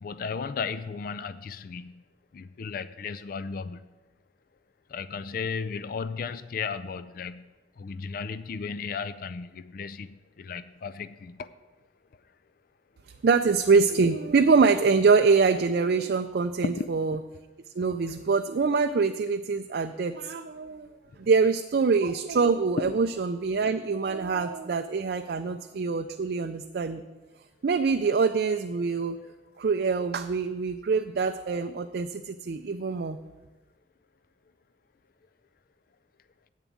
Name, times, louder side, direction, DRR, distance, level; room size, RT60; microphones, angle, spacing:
voice 1, 0.0-2.0 2.3-3.9 4.9-7.5 7.8-11.5 16.6-16.9 22.8-22.9, left 5 dB, 50° left, 14 dB, 0.4 m, -34 dB
voice 2, 13.2-17.2 17.8-20.9 21.2-27.0 27.6-29.2 29.6-33.2, right 4 dB, 55° right, 7 dB, 0.4 m, -24 dB
8.2 x 7.1 x 8.5 m, 1.2 s
head